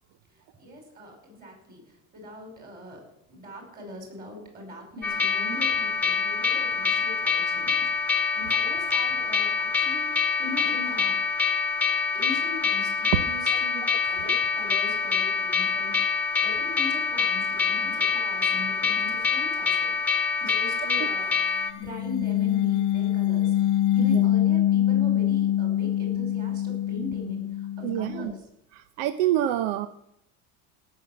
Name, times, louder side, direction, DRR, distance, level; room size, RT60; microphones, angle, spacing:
voice 1, 0.6-3.0 3.3-11.3 12.1-20.0 20.4-21.3 21.7-23.5 23.9-28.5, left 1 dB, 25° right, 2 dB, 5.2 m, -40 dB
sound 1, 5.0-21.7, left 5 dB, 5° left, 1.3 m, -25 dB
sound 2, 21.7-28.4, left 12 dB, 40° left, 1.0 m, -24 dB
voice 2, 27.8-28.3 28.7-29.9, right 13 dB, 85° right, 12 dB, 0.8 m, -27 dB
17.5 x 6.9 x 7.4 m, 0.76 s
cardioid pair, 155°, 34 cm